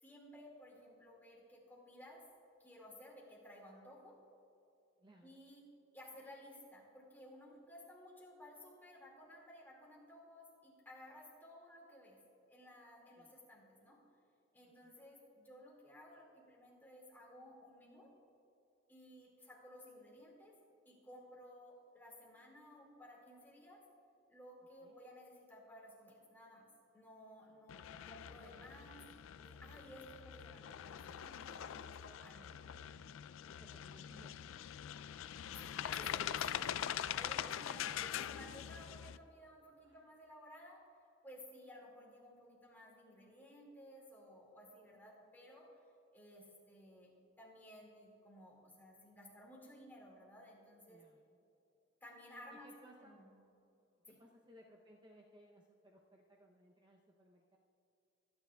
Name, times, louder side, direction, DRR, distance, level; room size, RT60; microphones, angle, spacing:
voice 1, 0.0-2.2 2.6-4.2 5.2-5.7 5.9-12.2 12.5-14.0 14.5-18.1 18.9-20.5 20.9-23.8 24.3-26.7 26.9-29.1 29.4-32.7 35.6-40.8 41.2-45.7 46.1-51.0 52.0-53.3 54.1-54.2, left 1 dB, 10° left, -3 dB, 2.0 m, -57 dB
voice 2, 5.0-5.4 13.2-13.4 14.6-15.1 24.8-25.0 27.5-27.6 33.4-34.5 37.3-37.9 39.8-40.1 50.9-51.4 52.5-53.2 54.1-57.6, equal, 20° right, -1 dB, 0.6 m, -63 dB
sound 1, 27.7-39.2, left 10 dB, 85° left, 0.3 m, -43 dB
24.0 x 9.5 x 2.3 m, 2.8 s
head